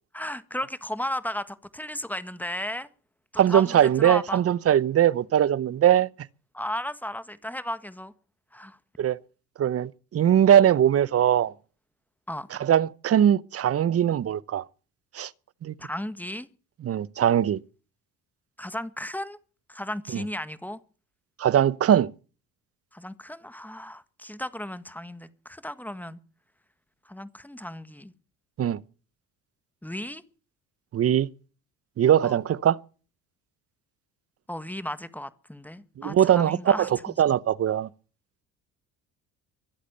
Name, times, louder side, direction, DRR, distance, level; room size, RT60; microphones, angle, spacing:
voice 1, 0.1-2.9 3.3-4.4 6.5-8.1 8.5-8.8 12.3-12.5 15.8-16.5 18.6-19.4 19.7-20.8 22.9-26.2 27.1-28.1 29.8-30.2 32.2-32.4 34.5-37.1, left 1 dB, 5° left, 1.5 m, -34 dB
voice 2, 3.4-6.1 9.0-9.2 9.6-11.5 12.5-14.6 15.1-15.3 15.6-15.7 16.8-17.6 20.1-20.2 21.4-22.1 28.6-28.8 30.9-31.3 32.0-32.8 36.0-37.9, right 10 dB, 45° right, 0.8 m, -21 dB
23.5 x 8.3 x 6.8 m
supercardioid pair, 85°, 34 cm